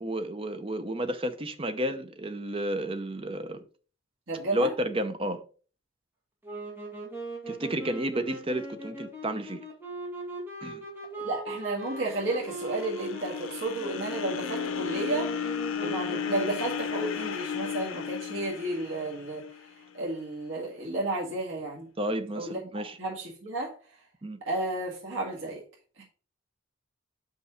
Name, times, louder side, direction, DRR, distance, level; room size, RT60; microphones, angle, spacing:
voice 1, 0.0-3.6 4.5-5.4 7.5-9.6 10.6-10.8 22.0-23.0 24.2-24.4, right 1 dB, 25° right, 0.7 m, -31 dB
voice 2, 4.3-4.7 11.2-15.3 15.8-19.4 19.9-21.9 22.4-23.8 24.5-25.6 26.0-26.1, right 2 dB, 70° right, 2.0 m, -32 dB
sound 1, 6.4-16.8, right 2 dB, 10° right, 2.0 m, -40 dB
sound 2, 11.9-20.1, left 7 dB, 85° left, 0.7 m, -35 dB
5.5 x 5.4 x 4.9 m
head